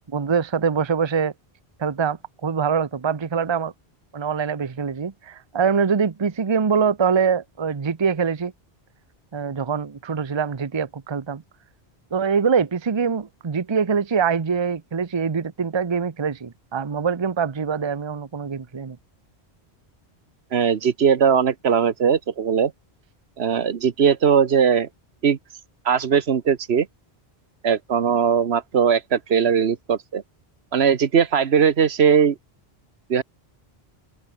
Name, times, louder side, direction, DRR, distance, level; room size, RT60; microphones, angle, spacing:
voice 1, 0.1-1.3 1.8-3.7 4.1-8.5 9.3-11.4 12.1-19.0, right 6 dB, 30° right, 0.7 m, -24 dB
voice 2, 20.5-22.7 23.4-24.9 25.2-25.4 25.8-26.9 27.6-30.2 30.7-32.4 33.1-33.2, right 7 dB, 75° right, 1.3 m, -19 dB
omnidirectional pair, 1.1 m